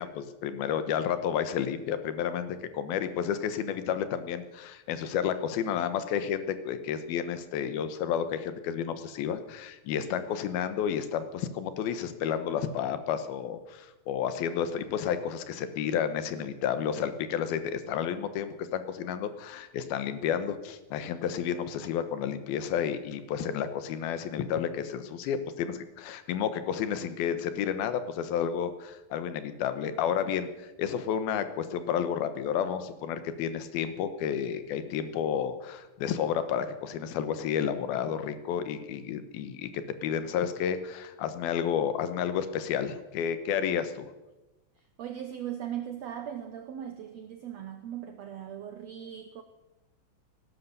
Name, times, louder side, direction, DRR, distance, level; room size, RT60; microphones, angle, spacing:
voice 1, 0.0-44.1, left 8 dB, 90° left, 11 dB, 3.0 m, -31 dB
voice 2, 45.0-49.4, right 10 dB, 80° right, 8 dB, 1.5 m, -39 dB
18.0 x 11.5 x 6.8 m, 1.1 s
omnidirectional pair, 4.3 m